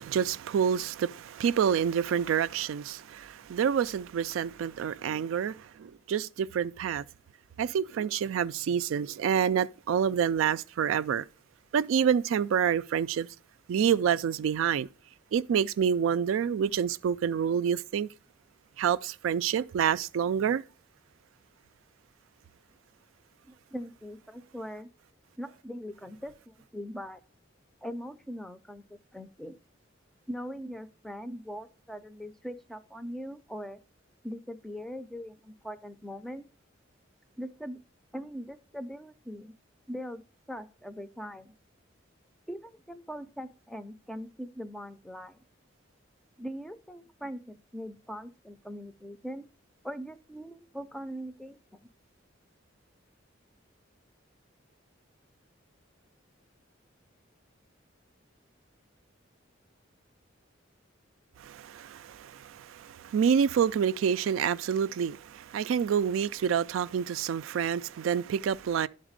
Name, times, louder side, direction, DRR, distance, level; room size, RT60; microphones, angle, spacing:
voice 1, 0.0-7.0 7.6-11.3 11.7-13.3 13.7-14.9 15.3-18.1 18.8-20.6 61.4-68.9, right 8 dB, 85° right, 0.3 m, -28 dB
voice 2, 23.4-24.9 25.4-27.2 27.8-29.6 30.3-33.8 34.2-36.5 37.4-37.8 38.1-39.5 39.9-40.2 40.5-41.5 42.5-45.4 46.4-49.5 49.8-51.6, equal, ahead, 0.4 m, -41 dB
11.0 x 4.0 x 5.0 m
head